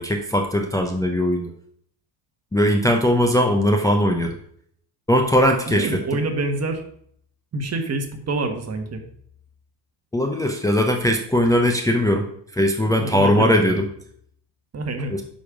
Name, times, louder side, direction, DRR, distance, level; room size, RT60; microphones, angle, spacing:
voice 1, 0.0-1.5 2.5-4.4 5.1-6.0 10.1-12.3 12.5-13.9 15.1-15.2, equal, 10° left, 1 dB, 0.7 m, -19 dB
voice 2, 5.7-6.8 7.5-9.0 13.0-13.8 14.7-15.1, right 2 dB, 35° right, 5 dB, 1.4 m, -26 dB
6.2 x 5.3 x 5.0 m, 0.66 s
cardioid pair, 100°, 45 cm